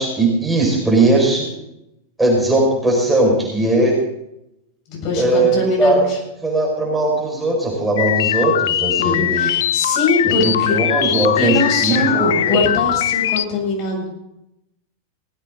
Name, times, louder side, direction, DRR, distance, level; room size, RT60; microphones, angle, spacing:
voice 1, 0.0-1.5 2.2-4.0 5.2-5.5 5.8-6.0 6.4-9.5 10.4-12.6, right 2 dB, 5° right, -2 dB, 5.8 m, -18 dB
voice 2, 4.9-6.2 9.0-10.8 11.4-14.1, left 3 dB, 40° left, -1 dB, 7.4 m, -22 dB
sound 1, 8.0-13.5, left 11 dB, 60° left, 0.5 m, -20 dB
19.5 x 16.0 x 4.0 m, 0.84 s
figure-of-eight pair, 90°, 0 cm